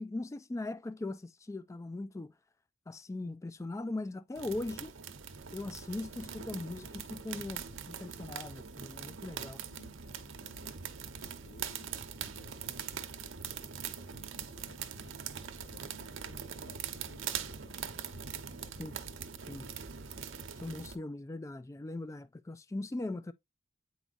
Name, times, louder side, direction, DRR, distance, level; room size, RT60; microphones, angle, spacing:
voice 1, 0.0-2.3 2.9-4.9 5.5-9.6 18.8-18.9 19.5-19.7 20.6-23.3, left 2 dB, 15° left, 0.3 m, -40 dB
sound 1, 4.3-21.0, right 7 dB, 85° right, 0.9 m, -42 dB
voice 2, 9.7-11.1 11.4-15.2 15.6-17.9 18.6-18.8, left 2 dB, 80° left, 1.2 m, -59 dB
9.0 x 4.8 x 2.5 m
head